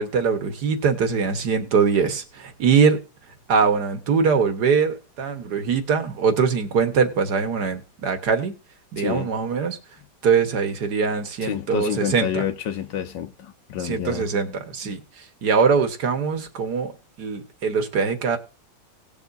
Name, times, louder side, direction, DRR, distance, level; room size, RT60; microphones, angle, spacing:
voice 1, 0.0-3.0 3.5-8.5 8.9-9.8 10.2-12.4 13.8-15.0 15.4-16.9 17.2-18.4, right 5 dB, 65° right, 1.9 m, -22 dB
voice 2, 9.0-9.3 11.4-14.6 14.8-14.9, left 10 dB, 85° left, 1.7 m, -29 dB
18.5 x 7.1 x 2.7 m
omnidirectional pair, 1.9 m